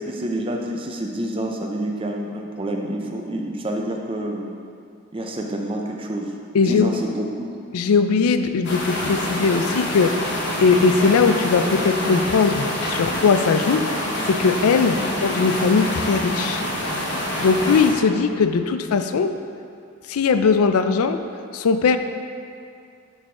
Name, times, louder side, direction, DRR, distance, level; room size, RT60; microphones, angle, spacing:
voice 1, 0.1-4.5 5.1-7.5 14.9-15.1, right 1 dB, 25° right, 1 dB, 0.5 m, -28 dB
voice 2, 6.5-7.0 7.7-10.3 10.6-13.8 14.3-16.6 17.4-19.3 20.1-21.2 21.5-22.0, left 5 dB, 80° left, 9 dB, 0.4 m, -19 dB
sound 1, 8.6-17.9, left 1 dB, 50° left, 1.0 m, -26 dB
11.0 x 4.0 x 3.7 m, 2.4 s
head